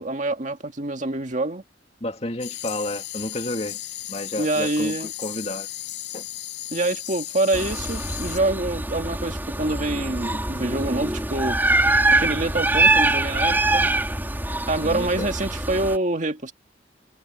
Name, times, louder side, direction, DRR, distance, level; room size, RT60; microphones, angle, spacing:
voice 1, 0.0-1.6 4.4-5.1 6.7-11.6 12.1-13.9 14.7-16.5, right 2 dB, 45° right, 1.9 m, -26 dB
voice 2, 2.0-3.8 4.1-5.7 6.1-6.3 14.8-15.3, left 1 dB, 35° left, 2.4 m, -31 dB
sound 1, 2.4-8.4, left 14 dB, 75° left, 7.8 m, -35 dB
sound 2, 7.5-16.0, right 2 dB, 10° right, 3.3 m, -23 dB
head